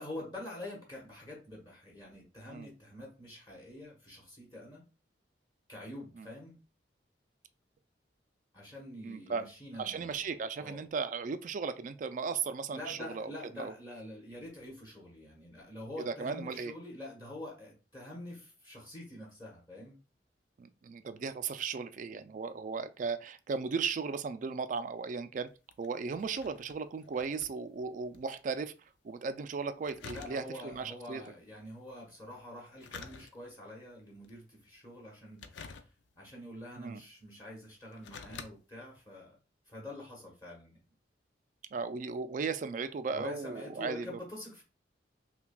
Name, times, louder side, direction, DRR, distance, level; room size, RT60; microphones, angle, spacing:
voice 1, 0.0-4.8 5.7-6.6 8.5-10.8 12.7-20.0 30.0-35.9 36.2-39.4 39.7-40.8 43.1-44.6, left 1 dB, 25° left, 1.1 m, -46 dB
voice 2, 9.0-9.5 9.8-13.7 16.1-16.7 20.6-25.5 25.8-28.7 29.0-31.2 36.8-37.0 41.7-44.2, right 5 dB, 45° right, 0.3 m, -36 dB
sound 1, 25.5-28.3 28.6-28.7 29.8-30.8 32.6-33.7 34.2-34.6 35.3-36.3 37.1-37.2 37.8-38.5 39.0-39.1, left 5 dB, 90° left, 0.5 m, -49 dB
5.7 x 2.2 x 2.3 m
head